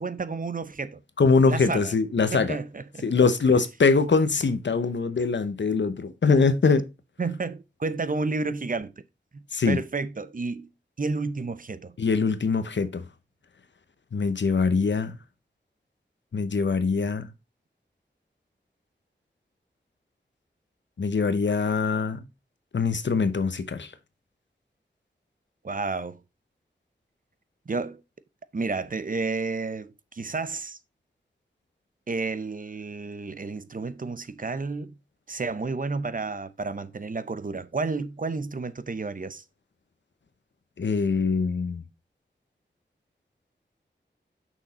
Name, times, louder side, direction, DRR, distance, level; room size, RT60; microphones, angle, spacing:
voice 1, 0.0-1.0 1.5-1.9 2.3-3.1 7.2-8.9 9.3-10.7 11.0-12.0 25.6-26.2 27.7-28.0 28.5-30.8 32.1-35.0 35.3-39.4, right 3 dB, 45° right, 0.7 m, -31 dB
voice 2, 1.2-2.6 3.0-6.8 9.5-9.8 12.0-13.0 14.1-15.2 16.3-17.3 21.0-22.2 22.7-23.9 40.8-41.8, left 4 dB, 80° left, 0.9 m, -23 dB
6.4 x 6.1 x 4.2 m
wide cardioid pair, 75°, 19 cm